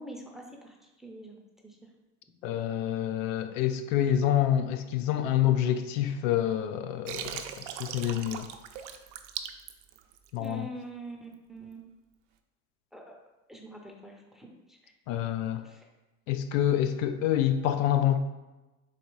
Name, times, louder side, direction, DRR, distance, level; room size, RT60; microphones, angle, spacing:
voice 1, 0.0-1.4 1.6-1.8 10.4-11.8 12.9-13.2 13.5-14.9 15.6-15.9, right 1 dB, ahead, 1 dB, 0.5 m, -45 dB
voice 2, 2.4-8.5 10.3-10.7 15.1-15.6 16.3-18.2, left 11 dB, 85° left, 8 dB, 0.5 m, -27 dB
Water, 7.1-10.5, right 9 dB, 75° right, 0.5 m, -39 dB
4.2 x 2.7 x 4.6 m, 1.1 s
supercardioid pair, 115°, 37 cm